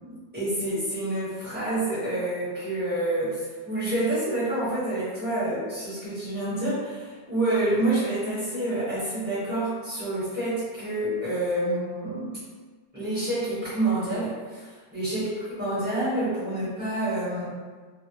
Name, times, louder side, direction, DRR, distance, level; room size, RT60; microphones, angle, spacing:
voice 1, 0.3-12.4 12.9-14.7 14.9-15.2 15.5-17.5, right 1 dB, 10° right, -13 dB, 0.7 m, -28 dB
3.3 x 2.0 x 3.0 m, 1.5 s
omnidirectional pair, 2.0 m